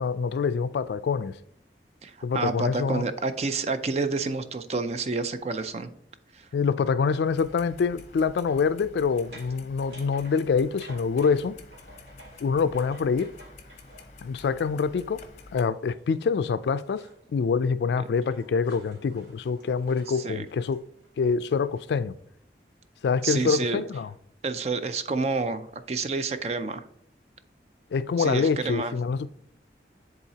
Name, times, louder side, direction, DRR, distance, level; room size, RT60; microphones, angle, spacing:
voice 1, 0.0-1.4 2.2-3.1 6.5-11.5 12.4-13.3 14.2-15.2 15.5-17.1 17.3-20.8 21.2-22.1 23.0-24.1 27.9-29.3, left 5 dB, 70° left, 0.3 m, -25 dB
voice 2, 2.0-5.9 6.3-6.5 20.2-20.5 23.2-23.8 24.4-26.8 28.2-28.9, right 3 dB, 35° right, 0.4 m, -29 dB
Clock, 7.2-15.6, left 3 dB, 40° left, 0.7 m, -49 dB
sound 1, 7.5-7.7 8.5-14.4 15.7-17.3 17.6-21.9, right 1 dB, 80° right, 2.2 m, -52 dB
9.9 x 4.0 x 2.8 m
head